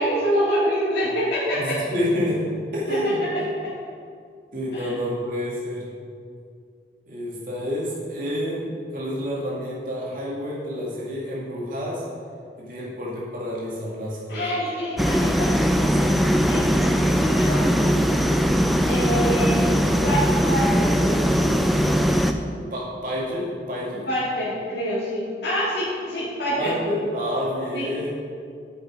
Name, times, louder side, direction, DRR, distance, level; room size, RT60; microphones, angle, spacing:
voice 1, 0.0-1.9 2.9-3.7 4.7-4.9 14.3-16.2 16.5-18.0 18.9-19.7 20.0-21.3 24.1-26.7 27.7-27.9, equal, 80° left, -12 dB, 2.4 m, -26 dB
voice 2, 1.5-3.2 4.5-5.9 7.1-12.0 12.6-14.6 22.7-24.0 26.6-28.1, equal, 50° right, -6 dB, 2.2 m, -29 dB
sound 1, 15.0-22.3, equal, ahead, 0.3 m, -20 dB
7.7 x 7.2 x 4.9 m, 2.3 s
head